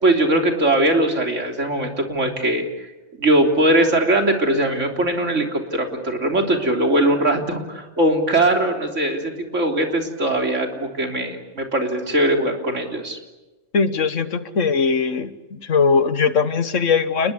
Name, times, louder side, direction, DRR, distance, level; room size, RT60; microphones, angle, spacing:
voice 1, 0.0-2.7 3.2-9.2 9.5-13.2, right 1 dB, 90° right, 3 dB, 3.7 m, -20 dB
voice 2, 13.7-17.3, left 5 dB, 90° left, 12 dB, 1.7 m, -20 dB
29.5 x 21.0 x 8.5 m, 1.1 s
omnidirectional pair, 1.2 m